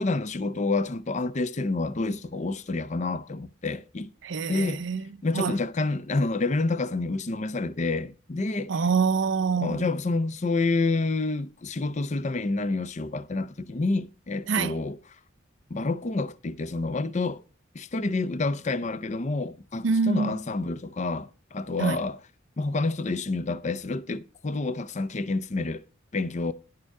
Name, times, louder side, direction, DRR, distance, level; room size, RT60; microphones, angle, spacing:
voice 1, 0.0-4.1 4.5-4.8 5.2-8.8 9.6-15.0 15.7-17.4 17.7-22.2 22.6-25.8 26.1-26.5, left 3 dB, 35° left, 0.5 m, -28 dB
voice 2, 4.2-5.5 8.7-9.9 14.5-14.8 19.8-20.4 21.8-22.0, right 5 dB, 65° right, 0.5 m, -26 dB
11.0 x 6.7 x 4.7 m
head